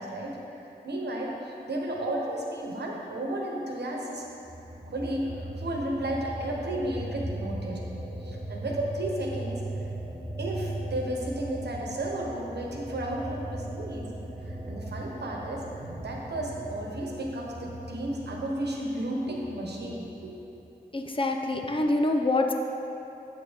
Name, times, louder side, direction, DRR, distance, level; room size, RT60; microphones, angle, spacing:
voice 1, 0.0-4.2 4.9-7.9 8.2-9.6 10.4-14.1 14.4-20.4, right 1 dB, 85° right, -1 dB, 1.1 m, -33 dB
sound 1, 4.4-20.6, right 1 dB, 25° right, 1.8 m, -38 dB
voice 2, 20.9-22.5, left 2 dB, 30° left, 3 dB, 0.6 m, -25 dB
8.5 x 7.8 x 3.6 m, 2.8 s
wide cardioid pair, 90°, 17 cm